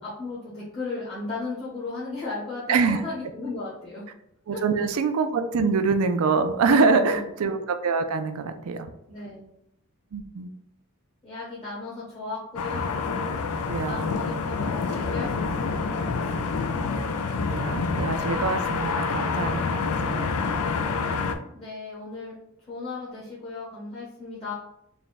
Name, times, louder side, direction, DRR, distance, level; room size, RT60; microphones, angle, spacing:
voice 1, 0.0-4.1 4.5-4.9 6.7-7.3 9.1-9.5 11.2-12.9 13.4-16.7 21.5-22.3 22.7-24.5, left 3 dB, 25° left, -9 dB, 0.9 m, -36 dB
voice 2, 2.7-3.0 4.5-8.9 10.1-10.5 13.7-14.2 17.5-20.3, right 4 dB, 80° right, 8 dB, 0.4 m, -25 dB
sound 1, 12.6-21.4, left 4 dB, 85° left, 0.4 m, -27 dB
3.5 x 2.2 x 4.0 m, 0.80 s
head